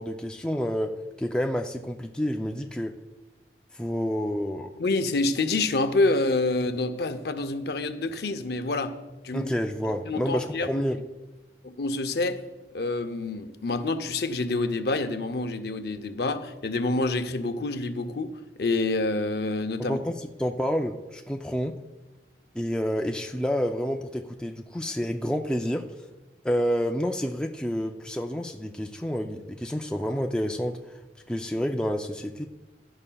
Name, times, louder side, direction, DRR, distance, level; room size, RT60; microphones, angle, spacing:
voice 1, 0.0-3.0 3.7-4.7 9.3-11.0 19.8-21.8 22.5-26.0 26.4-30.8 31.3-32.4, equal, 5° left, 0.4 m, -29 dB
voice 2, 4.8-9.0 9.2-9.5 10.1-10.9 11.6-12.4 12.7-18.3 18.6-20.0, left 2 dB, 60° left, 0.6 m, -27 dB
15.5 x 11.0 x 2.3 m
head